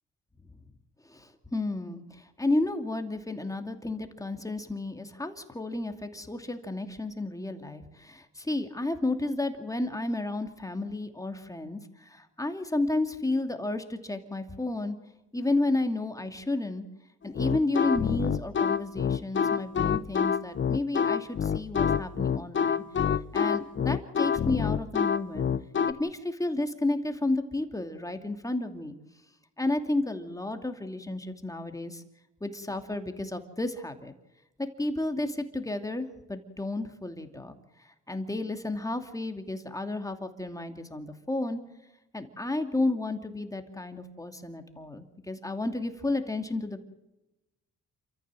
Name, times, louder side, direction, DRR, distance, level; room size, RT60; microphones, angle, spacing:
voice 1, 1.0-15.0 15.3-16.8 17.2-25.5 25.9-28.9 29.6-32.0 32.4-34.1 34.6-41.6 42.1-46.8, left 2 dB, 10° left, 6 dB, 2.7 m, -32 dB
sound 1, 17.3-25.9, left 7 dB, 40° left, 0.9 m, -26 dB
28.0 x 14.0 x 7.7 m, 0.97 s
cardioid pair, 90°, 30 cm